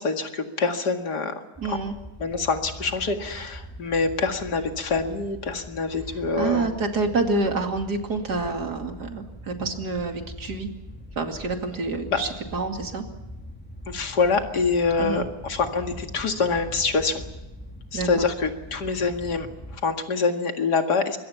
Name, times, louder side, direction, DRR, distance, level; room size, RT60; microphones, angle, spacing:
voice 1, 0.0-1.4 1.6-1.8 2.2-6.7 12.1-12.2 13.9-17.2 17.9-19.5 19.7-21.2, left 4 dB, 90° left, 5 dB, 2.6 m, -25 dB
sound 1, 1.5-19.8, equal, 5° left, 2.6 m, -42 dB
voice 2, 1.6-2.0 6.4-10.7 11.2-13.0 15.0-15.3 17.9-18.3, right 3 dB, 80° right, 4 dB, 3.0 m, -27 dB
25.0 x 22.0 x 5.9 m, 1.0 s
omnidirectional pair, 1.7 m